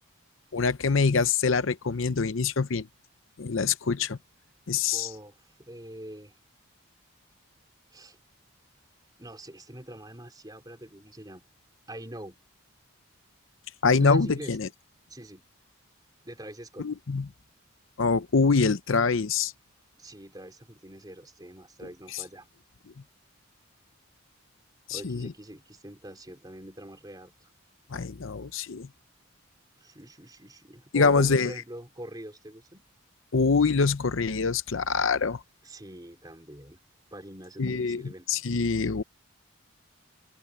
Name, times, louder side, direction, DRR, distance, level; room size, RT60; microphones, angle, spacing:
voice 1, 0.5-2.9 3.4-4.2 4.7-5.1 13.8-14.7 16.8-17.3 18.0-19.5 22.1-22.2 24.9-25.3 27.9-28.9 30.9-31.5 33.3-35.4 37.6-38.0 38.3-39.0, left 4 dB, 70° left, 0.7 m, -24 dB
voice 2, 4.9-6.3 7.9-8.2 9.2-11.4 11.9-12.4 14.0-14.6 15.1-15.4 16.2-16.9 20.0-22.5 24.9-27.5 29.8-32.9 35.6-36.8 37.1-38.3, right 1 dB, 20° right, 3.8 m, -43 dB
head